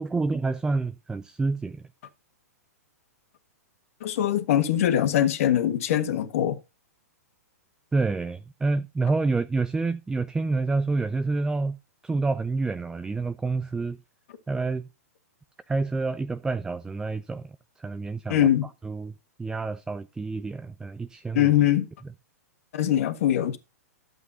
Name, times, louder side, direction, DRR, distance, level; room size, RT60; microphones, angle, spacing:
voice 1, 0.0-1.8 7.9-11.8 12.0-14.0 14.5-14.9 15.7-18.5 18.8-19.1 19.4-21.5, right 3 dB, 10° right, 0.4 m, -28 dB
voice 2, 4.0-6.6 18.3-18.7 21.4-21.9 22.7-23.6, left 11 dB, 60° left, 1.6 m, -22 dB
12.0 x 8.0 x 2.8 m
hypercardioid pair, 115°, 9 cm